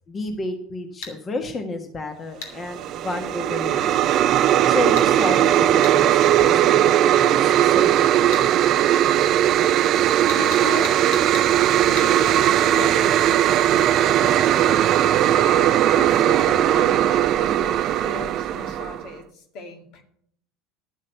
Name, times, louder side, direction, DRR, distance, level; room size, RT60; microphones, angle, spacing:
voice 1, 0.1-4.2 4.7-8.6, left 2 dB, 30° left, 5 dB, 1.5 m, -31 dB
sound 1, 1.0-1.2 2.4-2.6 5.0-5.1 5.8-6.0 8.3-8.5 10.3-11.5 12.0-12.1, left 4 dB, 75° left, 2.9 m, -35 dB
sound 2, 2.6-19.1, right 11 dB, 50° right, 0.5 m, -18 dB
voice 2, 10.3-11.0 11.8-14.8 15.2-20.0, left 4 dB, 60° left, 5 dB, 2.1 m, -37 dB
11.5 x 7.3 x 6.7 m, 0.68 s
hypercardioid pair, 90°, 0 cm